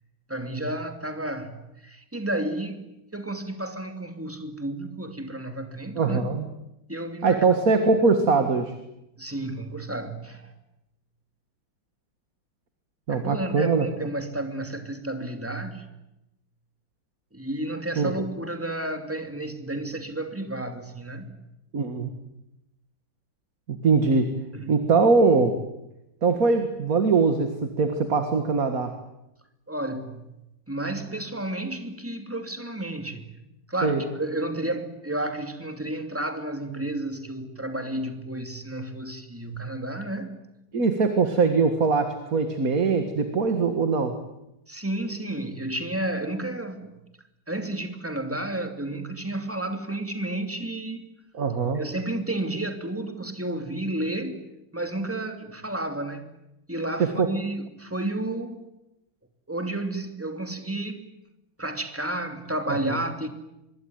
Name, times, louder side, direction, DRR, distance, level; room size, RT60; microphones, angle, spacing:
voice 1, 0.3-2.9 3.1-6.3 6.9-7.4 9.2-10.5 13.1-15.9 17.3-21.4 24.5-24.8 29.7-33.3 33.7-40.4 44.7-47.0 47.5-51.1 51.7-54.4 54.7-56.4 56.7-58.7 59.5-61.0 61.6-63.3, right 1 dB, 5° right, 6 dB, 2.6 m, -31 dB
voice 2, 6.0-6.4 7.2-8.8 13.1-13.9 18.0-18.2 21.7-22.1 23.7-24.4 24.7-25.6 26.2-28.9 33.8-34.0 40.7-44.2 51.3-51.8 57.0-57.3, right 4 dB, 45° right, 7 dB, 2.2 m, -22 dB
25.0 x 22.5 x 9.5 m, 0.90 s
omnidirectional pair, 2.3 m